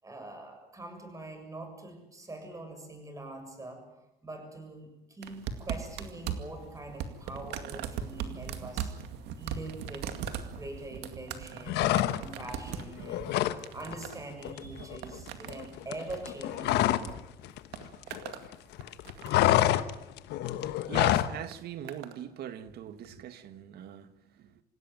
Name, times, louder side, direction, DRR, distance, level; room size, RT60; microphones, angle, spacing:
voice 1, 0.0-3.8 4.2-8.9 9.4-13.3 13.7-17.1, right 2 dB, 20° right, 7.1 m, -44 dB
sound 1, 5.2-17.1 17.4-18.5 18.8-19.5 20.4-20.7 21.5-22.2 23.0-23.1, right 8 dB, 90° right, 2.2 m, -40 dB
sound 2, 11.7-12.5 12.8-13.6 13.9-14.1 14.4-17.2 17.4-18.5 18.8-21.4, left 14 dB, 85° left, 1.2 m, -27 dB
voice 2, 20.8-24.6, right 10 dB, 70° right, 1.7 m, -41 dB
27.0 x 16.5 x 9.2 m
cardioid pair, 110°, 17 cm